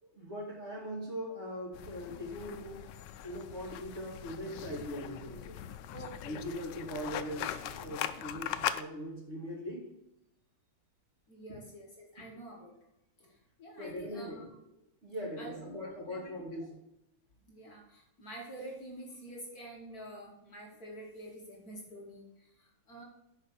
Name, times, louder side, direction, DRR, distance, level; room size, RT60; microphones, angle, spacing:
voice 1, 0.0-2.8 3.2-5.6 6.2-9.9 11.5-11.6 13.8-14.5 15.0-16.7, equal, 30° right, -3 dB, 2.6 m, -41 dB
sound 1, 1.7-8.8, left 11 dB, 75° left, 1.1 m, -40 dB
voice 2, 5.9-6.6 11.3-12.8 13.2-14.5 15.4-15.8 16.1-16.4 17.5-23.0, right 1 dB, 50° left, -1 dB, 1.8 m, -48 dB
6.5 x 5.1 x 6.7 m, 0.83 s
omnidirectional pair, 2.3 m